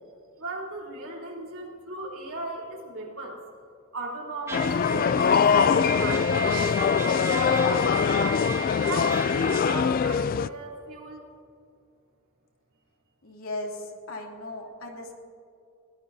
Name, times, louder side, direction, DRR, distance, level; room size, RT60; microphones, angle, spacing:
voice 1, 0.4-3.4 3.9-8.4 8.8-11.2, right 2 dB, 75° right, -3 dB, 3.1 m, -37 dB
sound 1, 4.5-10.5, left 6 dB, 45° left, 0.3 m, -23 dB
Trumpet, 4.5-9.8, right 2 dB, 15° right, 1.9 m, -34 dB
voice 2, 13.2-15.1, left 2 dB, 80° left, 0 dB, 2.8 m, -37 dB
22.5 x 17.5 x 2.7 m, 2.5 s
head